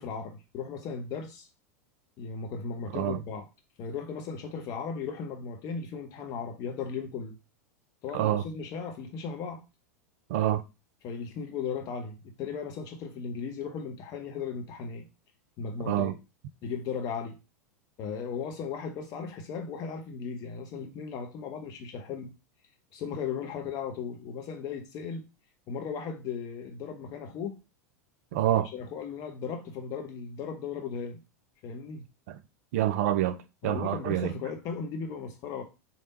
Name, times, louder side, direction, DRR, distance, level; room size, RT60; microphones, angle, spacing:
voice 1, 0.0-1.5 2.2-3.5 3.8-7.4 8.0-9.6 11.0-15.1 15.6-16.2 16.6-17.4 18.0-22.3 22.9-25.3 25.7-27.6 28.7-31.2 31.6-32.1 33.6-35.6, left 6 dB, 45° left, 1.0 m, -36 dB
voice 2, 8.1-8.4 10.3-10.6 15.9-16.1 28.3-28.7 32.3-32.4 32.7-34.4, right 12 dB, 60° right, 0.4 m, -27 dB
3.3 x 2.9 x 4.1 m
figure-of-eight pair, 90°, 9 cm